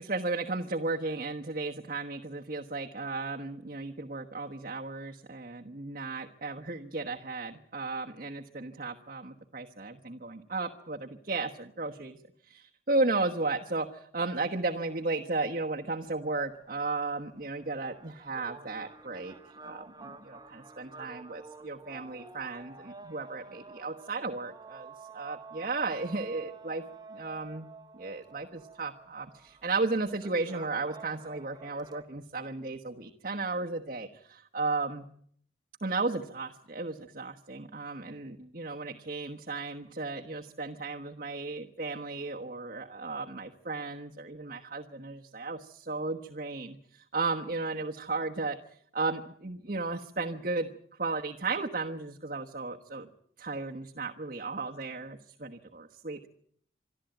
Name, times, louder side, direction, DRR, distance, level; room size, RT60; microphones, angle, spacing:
voice 1, 0.0-12.2 12.4-19.3 19.6-26.8 27.1-27.7 27.9-35.1 35.8-48.6 48.9-50.7 51.0-53.1 53.4-56.3, right 3 dB, 45° right, 2 dB, 1.2 m, -34 dB
sound 1, 16.0-32.0, right 4 dB, 20° right, 1.2 m, -50 dB
26.0 x 12.0 x 9.1 m, 0.65 s
head